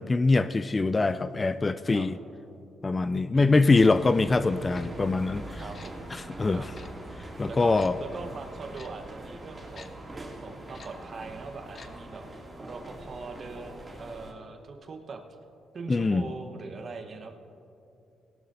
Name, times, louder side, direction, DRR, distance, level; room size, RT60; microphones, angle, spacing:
voice 1, 0.0-2.2 2.8-5.6 6.1-6.6 7.4-8.0 15.9-16.3, left 3 dB, 25° left, 13 dB, 0.3 m, -23 dB
voice 2, 3.3-3.8 5.6-6.2 6.5-6.7 7.5-12.2 12.6-15.2 15.7-17.3, right 4 dB, 45° right, 5 dB, 1.1 m, -42 dB
Tick-tock, 3.7-3.9 4.7-4.9 5.7-5.9 6.7-6.9 7.8-7.9 8.7-8.9 9.8-9.9 10.7-10.9 11.7-11.9 12.2-12.3, left 5 dB, 40° left, 0.7 m, -48 dB
sound 1, 3.7-14.3, right 1 dB, 20° right, 2.4 m, -43 dB
17.5 x 12.0 x 2.7 m, 2.8 s
cardioid pair, 90°, 0 cm